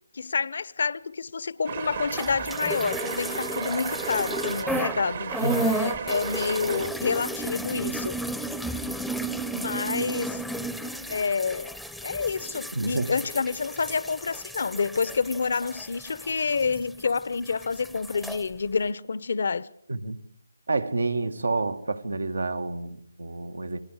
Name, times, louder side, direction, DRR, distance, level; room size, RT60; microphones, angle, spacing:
voice 1, 0.1-8.2 9.5-10.4 11.1-19.7, left 5 dB, 60° left, 0.9 m, -28 dB
sound 1, 1.7-6.9, right 7 dB, 50° right, 1.4 m, -34 dB
sound 2, 2.1-5.0 5.3-17.2 17.5-18.4, right 1 dB, ahead, 0.8 m, -33 dB
voice 2, 5.4-5.7 12.7-13.1 19.9-20.2 20.7-23.8, right 3 dB, 80° right, 1.9 m, -29 dB
30.0 x 22.5 x 5.0 m
figure-of-eight pair, 155°, 0 cm